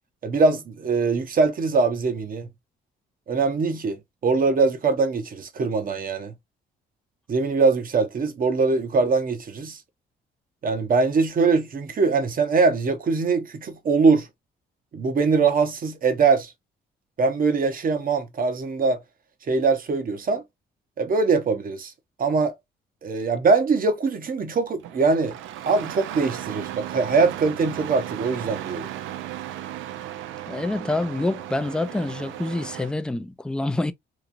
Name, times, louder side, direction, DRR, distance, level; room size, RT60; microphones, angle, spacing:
voice 1, 0.2-2.5 3.3-6.3 7.3-9.8 10.6-14.3 14.9-16.5 17.2-19.0 19.5-20.4 21.0-21.9 22.2-22.5 23.0-25.4 25.7-28.9, right 4 dB, 45° right, 0.8 m, -22 dB
Engine starting, 24.8-32.9, right 12 dB, 85° right, 0.4 m, -36 dB
voice 2, 30.5-33.9, left 2 dB, 5° left, 0.3 m, -27 dB
3.0 x 2.4 x 2.5 m
cardioid pair, 90°, 20 cm